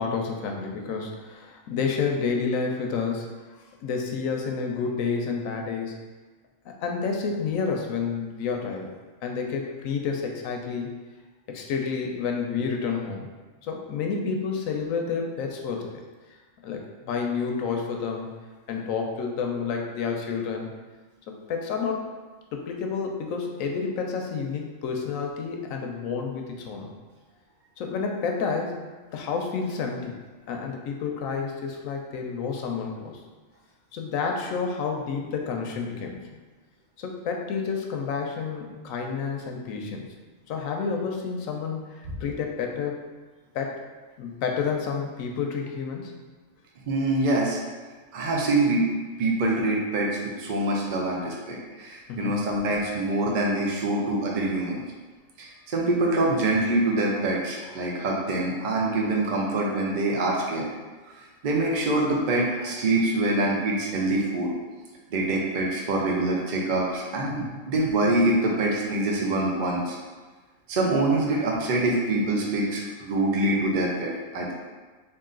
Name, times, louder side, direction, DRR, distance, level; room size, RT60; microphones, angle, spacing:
voice 1, 0.0-3.3 3.8-6.0 6.6-8.9 9.2-10.9 11.5-13.3 13.6-15.9 16.6-18.3 18.7-20.7 21.3-22.1 22.5-26.9 27.8-28.8 29.1-30.1 30.5-33.2 33.9-36.2 37.0-40.1 40.5-43.0 43.5-43.8 44.2-46.2 52.1-52.4 67.2-67.6, left 5 dB, 90° left, 2 dB, 1.0 m, -30 dB
voice 2, 46.9-47.6 48.1-48.8 49.2-54.8 55.4-60.7 61.1-61.2 61.4-64.5 65.1-70.0 70.7-74.5, right 2 dB, 55° right, -2 dB, 0.5 m, -25 dB
3.8 x 2.6 x 3.7 m, 1.4 s
omnidirectional pair, 1.4 m